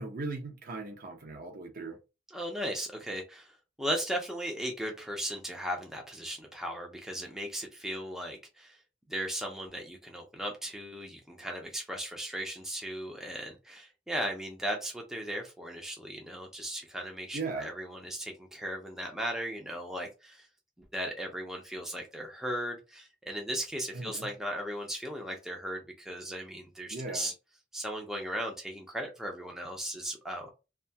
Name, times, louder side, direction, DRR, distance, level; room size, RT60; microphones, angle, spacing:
voice 1, 0.0-2.0 17.3-17.7 23.9-24.3 26.9-27.3, right 3 dB, 45° right, 0.6 m, -38 dB
voice 2, 2.3-8.8 9.1-20.5 20.9-27.3 27.7-30.5, equal, ahead, 0.5 m, -37 dB
2.7 x 2.2 x 2.7 m
head